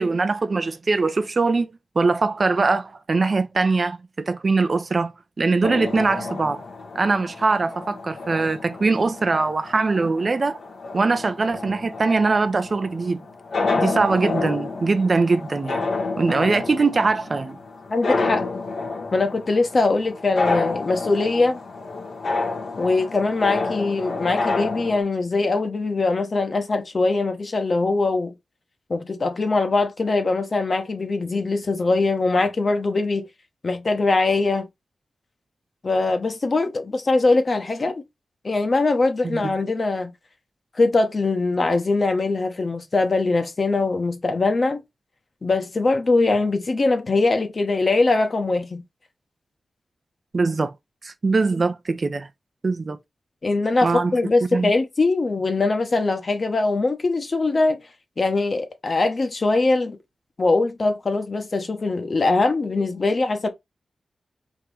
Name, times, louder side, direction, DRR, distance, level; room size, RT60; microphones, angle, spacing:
voice 1, 0.0-5.1 5.4-6.6 6.9-10.6 10.9-13.2 13.8-15.9 16.2-17.6 22.8-22.9 39.2-39.5 50.3-50.7 51.0-52.3 52.6-53.0 53.8-54.1 54.5-54.7, right 3 dB, 45° right, 0.5 m, -22 dB
sound 1, 5.6-25.0, left 3 dB, 85° left, 1.2 m, -29 dB
voice 2, 17.9-18.5 19.1-21.6 22.8-28.3 28.9-33.2 33.6-34.7 35.8-38.0 38.4-40.1 40.8-44.8 45.4-48.8 53.4-57.8 58.2-60.0 60.4-63.5, left 3 dB, 45° left, 0.9 m, -22 dB
3.6 x 2.9 x 4.7 m
wide cardioid pair, 115°, 0 cm